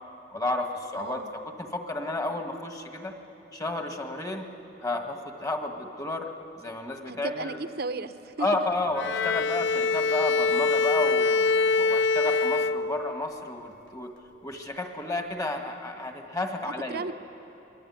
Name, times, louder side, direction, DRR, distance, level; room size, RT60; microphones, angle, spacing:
voice 1, 0.3-3.1 3.5-4.5 4.8-6.3 6.6-7.6 8.4-14.2 14.4-17.1, left 2 dB, 20° left, 4 dB, 1.8 m, -32 dB
voice 2, 0.9-1.4 7.1-8.5 16.9-17.1, right 3 dB, 60° right, 10 dB, 0.9 m, -35 dB
Bowed string instrument, 9.0-13.4, left 4 dB, 85° left, 0.5 m, -24 dB
26.5 x 21.5 x 9.5 m, 3.0 s
head